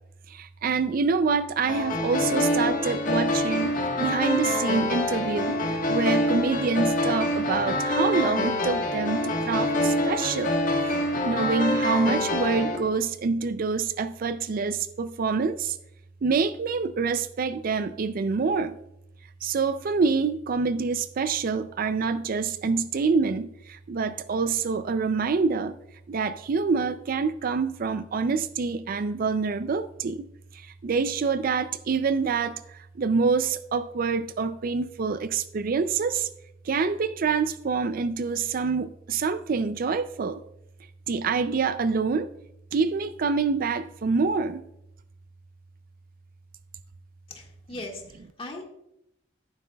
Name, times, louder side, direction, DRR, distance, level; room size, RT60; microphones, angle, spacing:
voice 1, 0.3-10.5 11.2-15.8 16.2-18.8 19.4-25.8 26.1-30.3 30.5-36.3 36.6-40.4 41.1-42.3 42.7-44.6, right 4 dB, 50° right, 13 dB, 0.4 m, -26 dB
sound 1, 1.7-12.8, left 1 dB, 45° left, 1.4 m, -26 dB
voice 2, 47.3-48.6, left 1 dB, 30° left, 1 dB, 1.7 m, -39 dB
13.0 x 11.0 x 2.3 m, 0.80 s
head